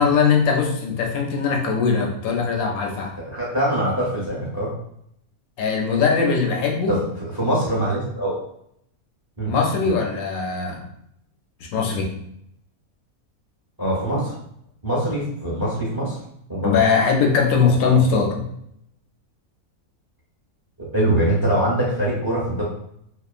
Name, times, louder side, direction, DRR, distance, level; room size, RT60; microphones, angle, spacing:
voice 1, 0.0-3.1 5.6-7.0 9.4-10.8 11.7-12.1 16.6-18.5, left 5 dB, 75° left, 1 dB, 1.0 m, -20 dB
voice 2, 3.3-4.7 6.9-7.0 7.3-8.4 9.4-9.5 9.8-9.9 13.8-14.3 14.8-16.2 16.5-16.8 20.8-22.6, right 1 dB, 25° right, -5 dB, 0.5 m, -23 dB
2.9 x 2.1 x 2.4 m, 0.73 s
omnidirectional pair, 1.5 m